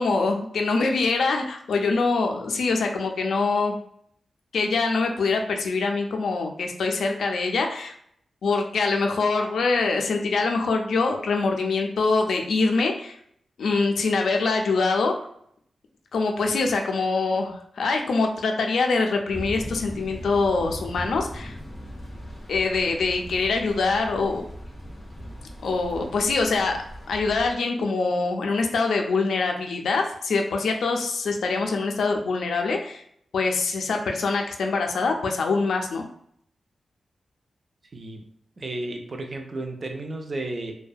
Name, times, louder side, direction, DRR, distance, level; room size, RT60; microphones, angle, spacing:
voice 1, 0.0-3.8 4.5-7.9 8.4-13.2 13.6-15.3 16.1-21.5 22.5-24.4 25.6-26.8 27.1-33.0 33.3-36.0, left 3 dB, 85° left, 3 dB, 0.3 m, -24 dB
sound 1, 19.3-27.5, equal, 35° left, 0.7 m, -39 dB
voice 2, 37.9-38.2 38.6-40.8, right 2 dB, 35° right, 3 dB, 0.3 m, -33 dB
2.5 x 2.1 x 2.3 m, 0.68 s
wide cardioid pair, 170°, 0 cm